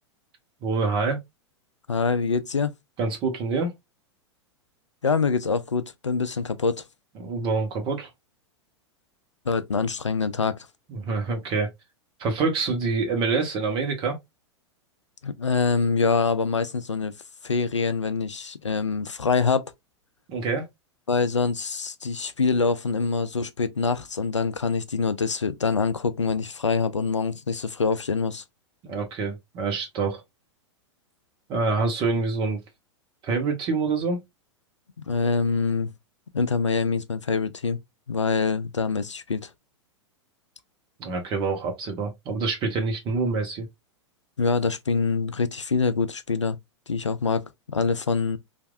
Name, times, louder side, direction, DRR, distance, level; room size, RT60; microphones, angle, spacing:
voice 1, 0.6-1.2 3.0-3.7 7.2-8.1 10.9-11.7 12.2-14.2 20.3-20.6 28.8-30.2 31.5-32.6 33.2-34.2 41.0-43.7, right 4 dB, 35° right, 1.2 m, -26 dB
voice 2, 1.9-2.7 5.0-6.8 9.5-10.6 15.2-17.1 17.4-19.7 21.1-28.4 35.1-35.9 36.3-37.8 38.1-39.5 44.4-46.6 46.9-48.4, left 4 dB, 80° left, 0.4 m, -25 dB
3.1 x 2.6 x 2.4 m
figure-of-eight pair, 95°, 15 cm